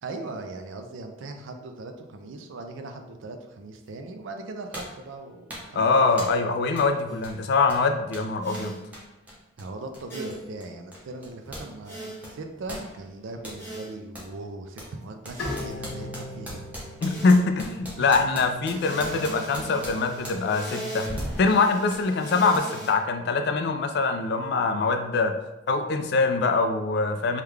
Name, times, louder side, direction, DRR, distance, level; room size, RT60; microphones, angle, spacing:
voice 1, 0.0-6.2 9.6-16.1 16.4-16.6 18.0-18.4 18.7-18.8, right 2 dB, 70° right, 5 dB, 0.4 m, -39 dB
sound 1, 3.9-4.0 4.7-5.0 5.5-5.8 6.2-6.4 6.8-6.9 7.2-11.7 12.0-13.6 14.1-14.3 14.8-20.6 21.2-21.4 21.9-22.0 22.5-22.6, equal, 5° right, 0.6 m, -41 dB
voice 2, 5.7-8.8 17.0-21.1 21.4-25.3 25.7-27.4, left 4 dB, 55° left, 7 dB, 0.3 m, -23 dB
sound 2, 7.1-7.3 8.4-8.8 10.1-10.5 11.8-12.3 13.6-14.0 15.3-15.8 17.0-17.5 18.7-22.9, right 1 dB, 10° left, 1.0 m, -37 dB
Bowed string instrument, 15.4-18.6, left 2 dB, 80° left, 1.4 m, -38 dB
3.5 x 2.3 x 3.2 m, 1.0 s
head